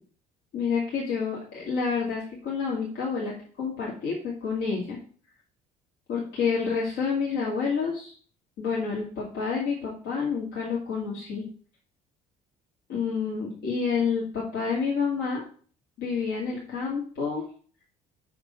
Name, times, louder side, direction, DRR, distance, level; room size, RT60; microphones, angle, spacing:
voice 1, 0.5-5.0 6.1-8.1 8.6-11.5 12.9-15.4 16.0-17.5, left 5 dB, 60° left, -5 dB, 2.3 m, -29 dB
6.2 x 5.9 x 5.5 m, 0.44 s
figure-of-eight pair, 55°, 20 cm